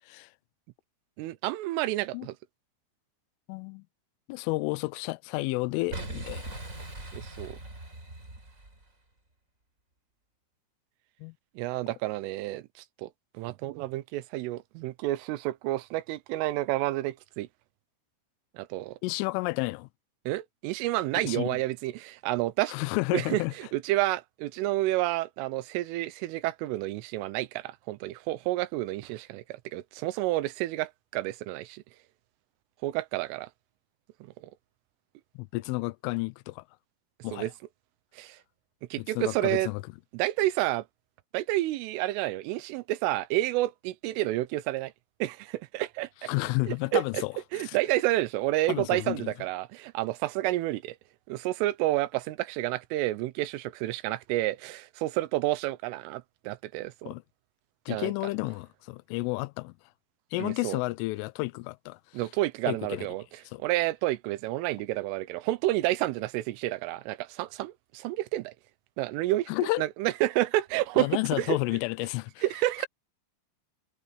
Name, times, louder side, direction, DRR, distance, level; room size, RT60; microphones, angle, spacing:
voice 1, 1.2-2.4 7.1-7.6 11.6-13.1 13.4-17.5 18.6-19.0 20.3-22.8 23.1-31.8 32.8-33.5 34.2-34.5 37.3-37.5 38.1-38.4 38.9-39.7 40.1-40.9 41.3-44.9 45.2-46.3 46.7-47.2 47.5-51.0 51.3-57.1 57.9-58.1 60.4-60.8 62.1-68.5 69.0-69.5 69.8-71.6 72.4-72.9, right 17 dB, 85° right, 3.4 m, -30 dB
voice 2, 3.5-3.8 4.3-6.5 11.2-11.3 19.0-19.9 21.2-21.6 22.7-23.5 35.4-36.6 37.2-37.5 39.2-39.8 46.3-47.3 47.7-47.8 48.7-49.3 57.1-57.2 57.9-59.7 60.3-62.0 62.7-63.1 63.5-63.6 69.5-69.8 71.0-72.4, left 23 dB, 85° left, 3.2 m, -31 dB
Boom, 5.9-8.9, right 2 dB, 15° right, 4.6 m, -40 dB
omnidirectional pair, 5.6 m